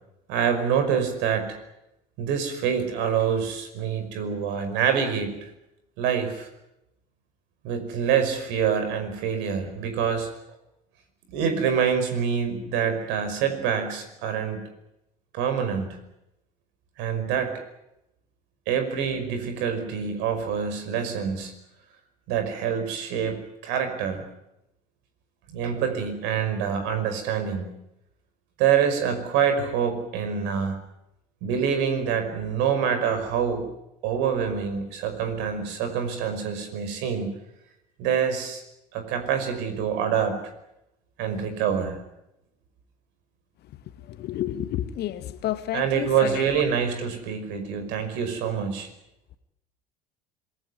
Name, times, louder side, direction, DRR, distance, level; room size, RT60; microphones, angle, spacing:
voice 1, 0.3-1.6 2.2-5.5 6.0-6.5 7.6-10.3 11.3-14.7 15.3-16.0 17.0-17.6 18.7-21.5 22.3-24.2 25.5-27.7 28.6-30.8 31.4-33.7 34.0-37.3 38.0-38.6 38.9-40.4 41.2-42.0 45.7-48.9, right 7 dB, 60° right, 8 dB, 5.4 m, -26 dB
voice 2, 44.2-46.1, left 12 dB, 50° left, 10 dB, 2.1 m, -30 dB
26.0 x 18.5 x 9.6 m, 0.87 s
hypercardioid pair, 65°, 21 cm